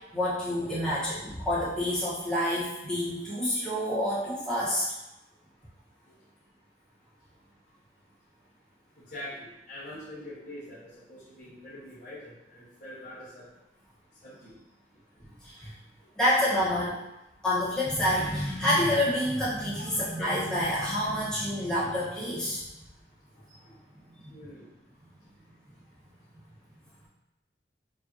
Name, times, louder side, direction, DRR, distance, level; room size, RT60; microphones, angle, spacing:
voice 1, 0.1-4.9 15.4-15.7 16.1-17.0 17.4-22.6 24.2-24.3, left 1 dB, 5° left, -10 dB, 1.3 m, -28 dB
voice 2, 9.0-13.4 14.2-14.5 19.7-20.2 23.6-23.7 24.3-24.6, left 1 dB, 45° left, -11 dB, 1.4 m, -44 dB
5.2 x 2.7 x 2.9 m, 0.96 s
head